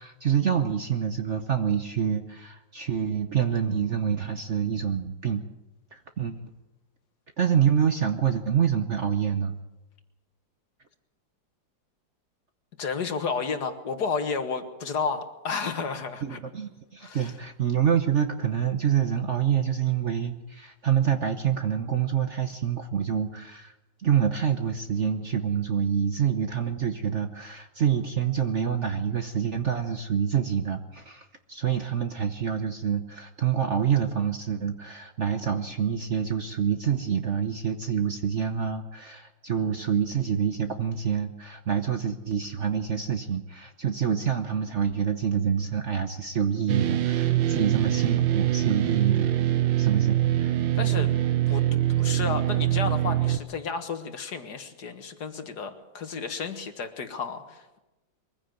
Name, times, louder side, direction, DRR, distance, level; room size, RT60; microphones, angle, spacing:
voice 1, 0.0-5.4 5.9-6.5 7.4-9.6 16.2-23.7 24.0-49.3 49.8-50.6, right 8 dB, 50° right, 7 dB, 1.0 m, -27 dB
voice 2, 12.8-16.4 17.0-17.3 50.8-51.1 51.5-51.6 52.0-57.8, left 5 dB, 60° left, 7 dB, 2.0 m, -32 dB
sound 1, 46.7-53.4, right 13 dB, 75° right, 1.6 m, -24 dB
23.0 x 15.5 x 7.9 m, 1.0 s
omnidirectional pair, 2.1 m